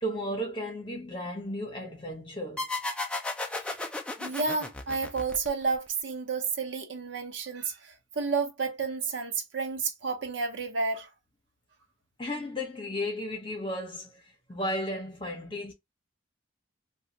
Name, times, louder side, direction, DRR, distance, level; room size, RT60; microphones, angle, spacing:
voice 1, 0.0-2.6 12.2-14.2 14.5-15.7, equal, 25° left, 1.1 m, -34 dB
sound 1, 2.6-5.9, left 2 dB, 5° left, 0.4 m, -34 dB
voice 2, 4.2-11.1, right 4 dB, 70° right, 0.8 m, -31 dB
3.0 x 2.4 x 2.8 m
head